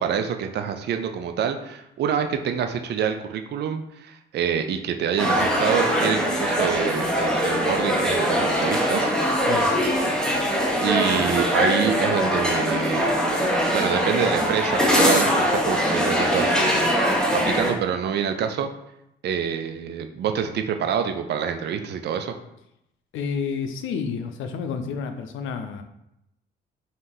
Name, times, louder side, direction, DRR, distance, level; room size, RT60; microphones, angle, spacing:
voice 1, 0.0-9.1 10.8-18.7 19.2-22.3, right 7 dB, 60° right, 7 dB, 0.5 m, -27 dB
sound 1, 5.2-17.7, equal, 5° left, 1.1 m, -22 dB
voice 2, 23.1-25.8, left 6 dB, 80° left, 7 dB, 0.5 m, -30 dB
3.8 x 2.6 x 3.8 m, 0.82 s
cardioid pair, 90°, 20 cm